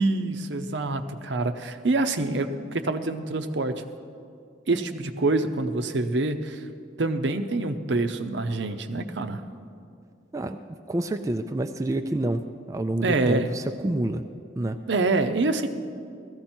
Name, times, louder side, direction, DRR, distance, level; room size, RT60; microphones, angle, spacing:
voice 1, 0.0-3.8 4.7-6.6 7.0-9.4 13.0-13.5 14.9-15.7, right 2 dB, 70° right, 8 dB, 0.7 m, -26 dB
voice 2, 10.9-14.2 14.6-14.8, right 1 dB, 15° right, 7 dB, 0.3 m, -28 dB
16.5 x 14.5 x 4.4 m, 2.4 s
head